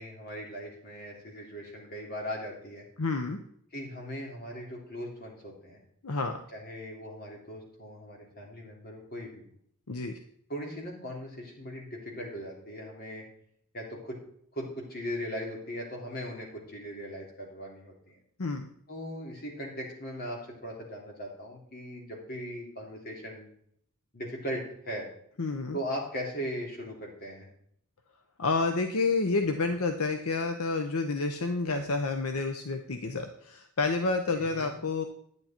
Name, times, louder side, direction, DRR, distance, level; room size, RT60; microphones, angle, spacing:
voice 1, 0.0-2.8 3.7-5.8 6.5-9.4 10.5-13.2 13.7-14.2 14.5-18.2 18.9-23.5 24.1-25.1 25.7-27.5 34.3-34.7, equal, 45° left, -1 dB, 3.3 m, -39 dB
voice 2, 3.0-3.4 6.0-6.3 9.9-10.2 18.4-18.7 25.4-25.8 28.4-35.0, left 3 dB, 75° left, 6 dB, 0.8 m, -29 dB
11.0 x 9.5 x 4.4 m, 0.67 s
head